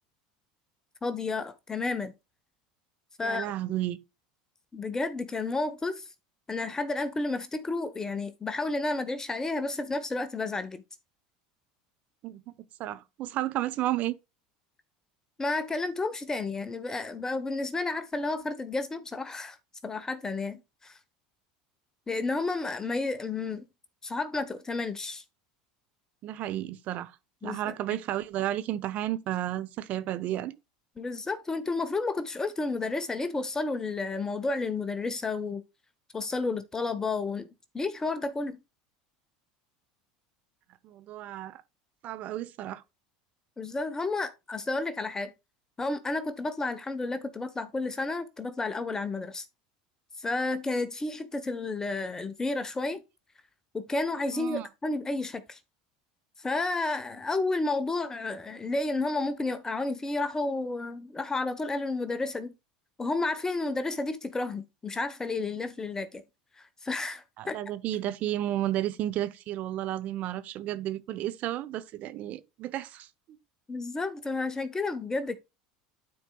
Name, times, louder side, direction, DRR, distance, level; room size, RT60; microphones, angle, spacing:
voice 1, 1.0-2.1 3.2-3.5 4.7-6.1 6.5-10.8 15.4-19.6 19.8-21.0 22.1-23.7 24.0-25.2 27.4-27.7 31.0-35.6 36.1-37.5 37.7-38.6 43.6-45.3 45.8-49.4 50.2-53.0 53.7-55.6 56.4-62.5 63.0-66.2 66.6-67.6 73.7-75.4, left 3 dB, 20° left, 1.1 m, -31 dB
voice 2, 3.2-4.0 12.2-12.4 12.8-14.1 26.2-27.2 27.4-30.5 40.8-41.6 42.0-42.8 54.3-54.7 67.4-73.4, right 13 dB, 50° right, 0.9 m, -32 dB
12.5 x 4.5 x 2.3 m
hypercardioid pair, 85°, 3 cm